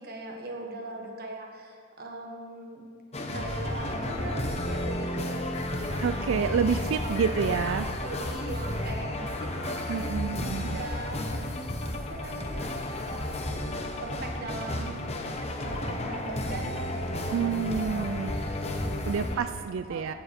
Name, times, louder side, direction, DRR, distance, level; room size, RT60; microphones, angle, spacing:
voice 1, 0.0-2.9 3.3-6.2 6.7-10.2 10.6-12.7 13.7-19.4 19.9-20.1, right 2 dB, 50° right, 1 dB, 1.4 m, -41 dB
sound 1, 3.1-19.4, left 1 dB, 30° left, 0.8 m, -32 dB
voice 2, 6.0-7.9 9.9-10.8 17.3-18.3 19.1-20.1, right 6 dB, 65° right, 10 dB, 0.3 m, -28 dB
15.0 x 7.0 x 4.4 m, 2.2 s
head